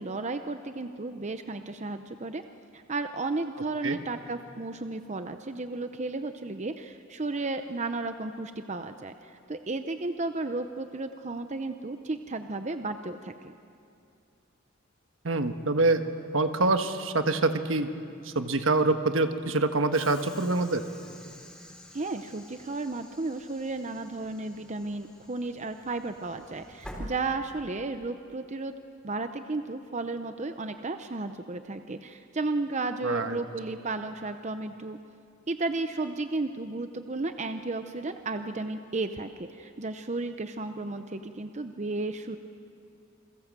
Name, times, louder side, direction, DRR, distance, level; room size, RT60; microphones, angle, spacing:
voice 1, 0.0-2.4 2.7-13.5 21.9-28.7 29.0-35.0 35.5-42.4, right 3 dB, 35° right, 8 dB, 0.7 m, -33 dB
voice 2, 15.2-16.0 16.3-17.9 18.2-20.8 33.0-33.4, right 3 dB, 70° right, 7 dB, 1.4 m, -25 dB
Train / Sliding door, 19.9-27.9, equal, 5° left, 4.2 m, -48 dB
29.0 x 22.5 x 7.5 m, 2.5 s
head